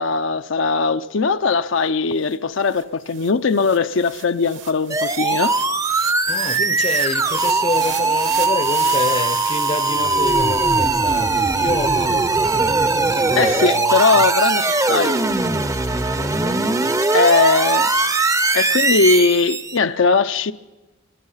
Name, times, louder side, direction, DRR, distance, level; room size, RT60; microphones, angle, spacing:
voice 1, 0.0-5.5 13.4-15.2 17.1-17.9 18.5-20.5, left 4 dB, 65° left, 0.6 m, -19 dB
sound 1, 2.3-2.4 2.7-13.0, right 11 dB, 65° right, 1.3 m, -35 dB
sound 2, 4.9-19.8, right 3 dB, 15° right, 0.6 m, -20 dB
voice 2, 6.3-14.2 15.8-17.0, left 3 dB, 30° left, 0.7 m, -28 dB
24.0 x 21.0 x 5.7 m
head